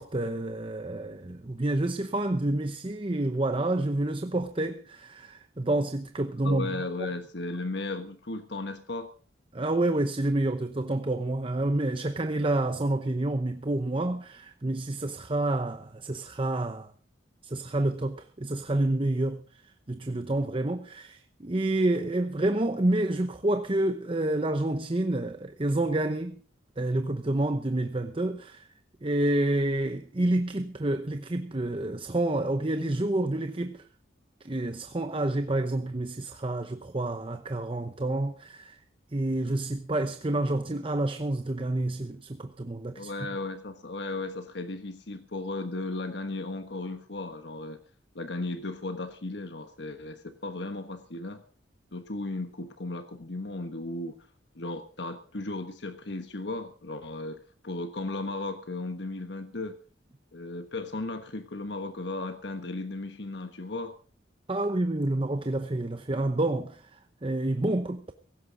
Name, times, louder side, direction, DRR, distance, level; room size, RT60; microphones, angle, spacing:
voice 1, 0.0-6.8 9.5-16.9 17.4-26.4 26.8-28.7 29.0-33.9 34.4-38.8 39.1-43.1 64.5-68.1, right 1 dB, 30° right, 0.8 m, -28 dB
voice 2, 6.4-9.1 43.0-47.8 48.1-51.4 51.9-54.2 54.5-59.8 60.3-64.0, left 2 dB, 65° left, 1.3 m, -35 dB
17.5 x 16.0 x 3.9 m
head